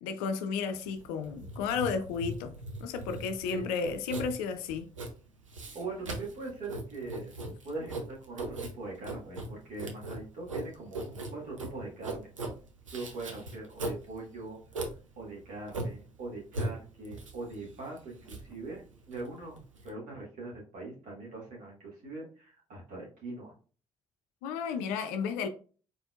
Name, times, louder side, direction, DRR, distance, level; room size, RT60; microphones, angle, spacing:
voice 1, 0.0-2.5 2.8-4.9 24.4-25.5, left 6 dB, 65° left, 0.4 m, -33 dB
Writing, 0.7-19.9, right 2 dB, 85° right, 0.5 m, -40 dB
voice 2, 5.7-7.3 7.6-12.5 12.9-23.5, right 3 dB, 55° right, 2.1 m, -42 dB
4.2 x 3.7 x 2.3 m
figure-of-eight pair, 40°, 16 cm